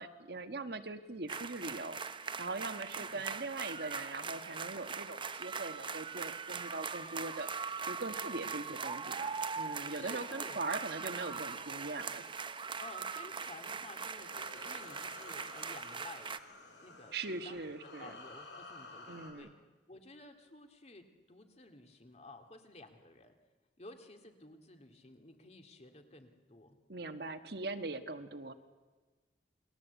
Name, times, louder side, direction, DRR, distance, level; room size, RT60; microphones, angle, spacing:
voice 1, 0.0-2.0 2.4-7.5 7.8-12.5 17.1-18.1 19.1-19.5 26.9-28.5, right 3 dB, 60° right, 8 dB, 1.4 m, -41 dB
sound 1, 1.3-16.4, right 5 dB, 30° right, 0.9 m, -41 dB
voice 2, 9.9-10.6 12.8-16.3 16.8-17.2 17.4-19.5 19.9-23.4 23.8-26.8, left 2 dB, 40° left, 5 dB, 2.4 m, -53 dB
sound 2, 14.2-19.3, left 2 dB, 80° left, 6.3 m, -52 dB
28.0 x 20.5 x 8.2 m, 1.3 s
head